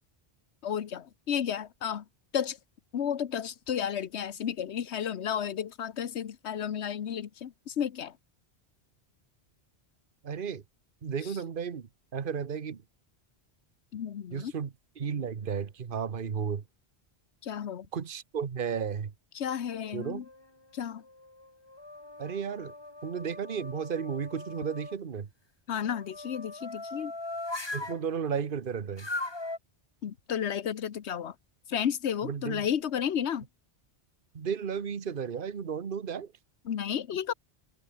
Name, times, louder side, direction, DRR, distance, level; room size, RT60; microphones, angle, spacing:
voice 1, 0.6-2.0 2.3-2.6 2.9-8.1 13.9-14.5 17.4-17.9 19.3-20.2 20.7-21.0 25.7-27.1 30.0-31.3 31.7-33.4 36.6-37.3, left 8 dB, 85° left, 1.2 m, -32 dB
voice 2, 10.2-10.6 11.0-12.8 14.3-16.6 17.9-19.1 19.9-20.2 22.2-22.7 23.0-25.3 27.7-29.1 32.2-32.7 34.3-36.3, right 7 dB, 55° right, 1.3 m, -34 dB
sound 1, 19.6-20.5 21.0-25.0 25.8-28.0 29.0-29.6, left 2 dB, 25° left, 1.9 m, -40 dB
omnidirectional pair, 1.1 m